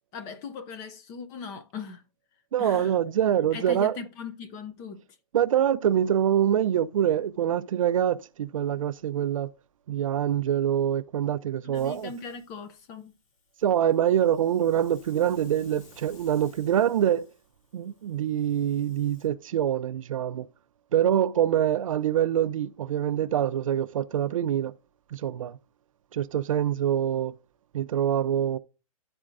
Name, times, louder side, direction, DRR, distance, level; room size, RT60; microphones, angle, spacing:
voice 1, 0.1-2.0 2.6-2.9 3.5-5.0 11.6-13.1, left 5 dB, 15° left, 0.4 m, -39 dB
voice 2, 2.5-4.0 5.3-9.5 9.9-12.1 13.6-17.3 17.7-20.5 20.9-24.7 25.1-25.6 26.1-27.4 27.7-28.6, right 10 dB, 65° right, 0.5 m, -25 dB
Hiss, 11.7-19.3, left 3 dB, 55° left, 3.0 m, -57 dB
12.5 x 4.3 x 2.5 m
hypercardioid pair, 160°, 18 cm